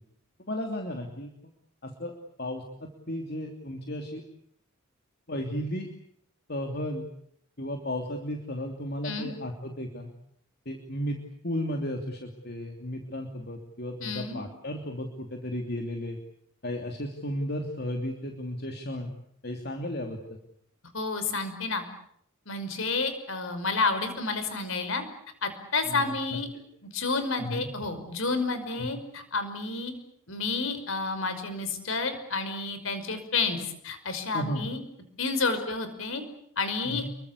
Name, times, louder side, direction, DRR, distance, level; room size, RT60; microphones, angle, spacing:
voice 1, 0.5-1.3 1.8-2.1 2.4-4.2 5.3-5.9 6.5-7.0 7.6-10.1 10.6-11.2 11.4-16.2 16.6-19.1 19.4-20.2 25.9-26.4 27.4-27.7 28.7-28.9 34.3-34.6 36.8-37.1, left 1 dB, 45° left, 4 dB, 2.9 m, -34 dB
voice 2, 14.0-14.4 20.9-21.8 22.5-25.0 25.4-26.5 26.8-29.9 30.3-34.8 35.2-36.2 36.6-37.0, left 3 dB, 60° left, 10 dB, 5.5 m, -30 dB
28.5 x 23.5 x 8.4 m, 0.68 s
head